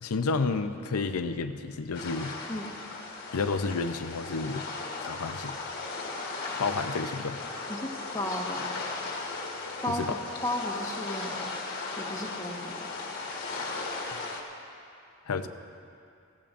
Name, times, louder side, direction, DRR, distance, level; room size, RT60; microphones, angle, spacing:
voice 1, 0.0-2.3 3.3-4.6 5.0-5.6 6.6-7.4 9.9-10.2 15.3-15.5, left 4 dB, 90° left, 8 dB, 0.6 m, -30 dB
sound 1, 1.9-14.4, left 3 dB, 45° left, 1.4 m, -37 dB
voice 2, 7.7-8.8 9.8-10.2 10.4-11.5 12.0-12.7, left 1 dB, 15° left, -1 dB, 1.2 m, -34 dB
19.5 x 16.0 x 2.5 m, 2.5 s
head